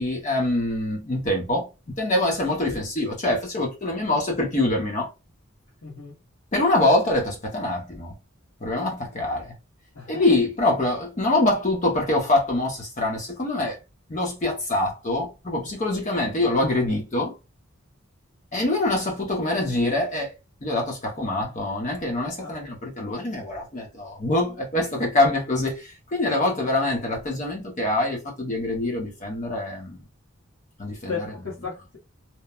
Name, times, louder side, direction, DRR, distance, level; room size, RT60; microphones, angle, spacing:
voice 1, 0.0-1.7 2.0-5.1 6.5-8.1 8.6-9.5 10.1-13.8 14.1-17.3 18.5-20.3 20.6-30.0 30.8-31.3, left 2 dB, 35° left, 0.7 m, -24 dB
voice 2, 5.8-6.1 9.9-10.2 22.4-22.5 26.5-26.9 31.1-32.0, left 5 dB, 65° left, 1.0 m, -35 dB
2.9 x 2.1 x 2.2 m
head